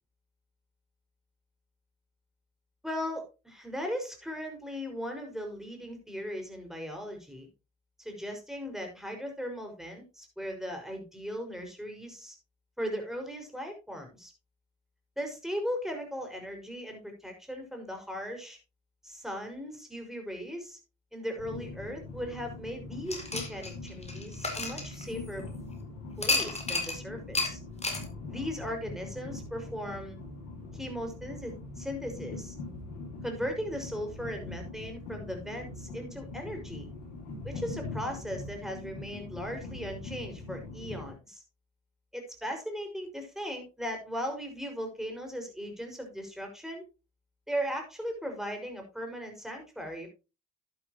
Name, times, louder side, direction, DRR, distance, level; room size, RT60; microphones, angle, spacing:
voice 1, 2.8-7.5 8.0-12.3 12.8-14.3 15.2-18.6 19.0-20.8 21.1-25.4 26.2-27.6 28.3-30.2 30.7-32.6 33.2-36.9 37.4-41.4 42.1-46.8 47.5-50.1, equal, ahead, 4 dB, 5.9 m, -38 dB
Train, 21.4-41.1, left 3 dB, 80° left, 3.7 m, -42 dB
sound 1, 23.1-25.5 26.2-27.0 27.3-27.5 27.8-28.0, left 2 dB, 20° left, 4.4 m, -31 dB
11.5 x 10.0 x 3.1 m, 0.29 s
hypercardioid pair, 40°, 33 cm